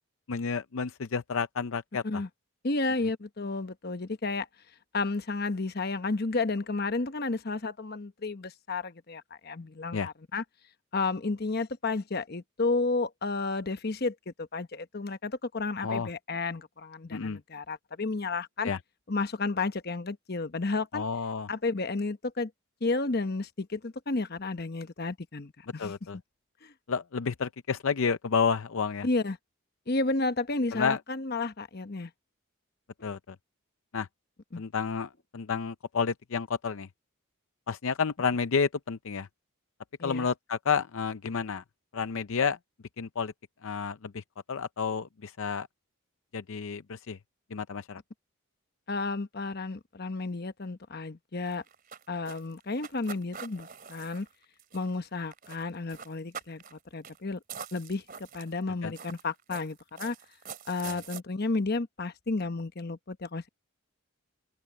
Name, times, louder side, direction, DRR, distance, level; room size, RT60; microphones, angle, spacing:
voice 1, 0.3-2.2 9.9-10.1 15.8-16.1 17.1-17.4 18.6-18.8 20.9-21.5 25.8-26.2 26.9-29.1 30.7-31.0 33.0-33.4 33.9-34.1 34.6-36.9 37.7-39.3 40.0-41.6 41.9-42.6 43.0-43.3 43.6-45.7 46.3-47.2 47.5-48.0 58.8-58.9 60.8-61.0, left 5 dB, 70° left, 0.5 m, -30 dB
voice 2, 2.6-4.5 4.9-10.4 10.9-18.7 19.1-21.0 21.5-22.5 22.8-25.9 26.6-26.7 29.0-29.4 29.9-32.1 34.5-34.6 40.0-40.3 48.9-51.6 52.1-54.3 54.7-57.4 57.7-60.2 60.7-63.5, left 3 dB, 45° left, 1.0 m, -32 dB
sound 1, 51.4-55.1 55.3-55.6 55.9-56.8 57.0-57.2 57.5-58.6 58.9-61.2, right 7 dB, 40° right, 3.1 m, -44 dB
open air
head